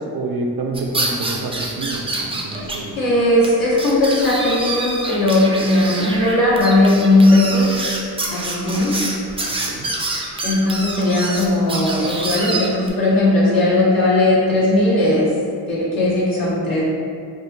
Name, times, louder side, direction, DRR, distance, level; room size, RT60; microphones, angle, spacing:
voice 1, 0.0-3.0 9.5-9.9, right 2 dB, 60° right, 1 dB, 0.5 m, -28 dB
sound 1, 0.7-2.8 3.1-3.2 3.4-3.5 3.8-12.9, right 2 dB, 15° right, 0.5 m, -26 dB
voice 2, 3.0-7.8 8.3-9.0 10.4-15.3 15.7-16.8, left 1 dB, 60° left, -8 dB, 1.4 m, -17 dB
5.0 x 2.0 x 2.9 m, 2.4 s
cardioid pair, 65°, 40 cm